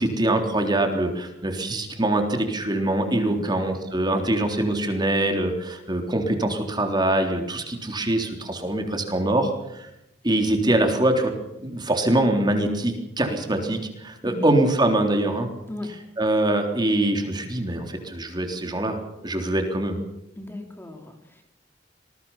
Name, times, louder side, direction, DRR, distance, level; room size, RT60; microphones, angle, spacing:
voice 1, 0.0-9.9 10.2-15.5 16.2-20.0, right 1 dB, 25° right, 4 dB, 3.6 m, -24 dB
voice 2, 20.4-21.4, left 2 dB, 15° left, 4 dB, 2.9 m, -36 dB
26.0 x 21.5 x 5.7 m, 0.85 s
head